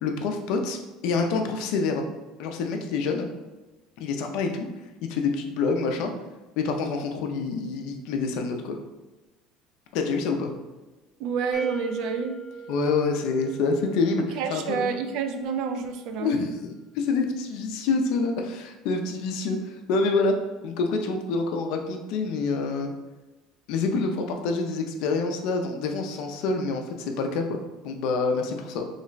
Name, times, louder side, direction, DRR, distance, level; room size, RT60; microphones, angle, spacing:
voice 1, 0.0-2.1 2.4-3.3 4.0-4.6 5.1-6.1 6.6-8.8 9.9-10.5 12.7-14.8 16.2-16.5 16.9-20.3 20.6-22.9 23.7-28.9, left 4 dB, 65° left, 4 dB, 0.5 m, -27 dB
voice 2, 11.2-12.4 14.3-16.3, right 6 dB, 60° right, 6 dB, 0.4 m, -28 dB
sound 1, 11.5-14.4, right 3 dB, 40° left, 0.8 m, -40 dB
3.1 x 2.1 x 3.9 m, 1.1 s
cardioid pair, 150°, 0 cm